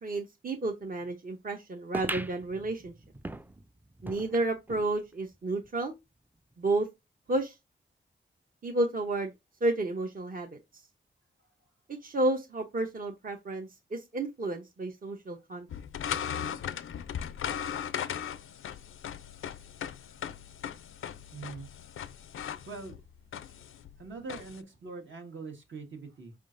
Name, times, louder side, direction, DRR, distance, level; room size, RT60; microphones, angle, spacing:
voice 1, 0.0-2.9 4.0-5.9 6.6-6.9 7.3-7.6 8.6-9.3 9.6-10.6 12.0-15.7, right 2 dB, 45° right, 0.7 m, -31 dB
sound 1, 1.9-4.9 5.3-5.4 5.6-5.7 6.5-6.6, right 2 dB, 10° right, 0.3 m, -40 dB
sound 2, 15.7-24.6, left 9 dB, 85° left, 0.4 m, -38 dB
voice 2, 21.3-21.7 22.7-23.0 23.4-23.5 24.0-26.3, right 4 dB, 70° right, 1.4 m, -43 dB
4.7 x 3.6 x 2.5 m
cardioid pair, 60°, 20 cm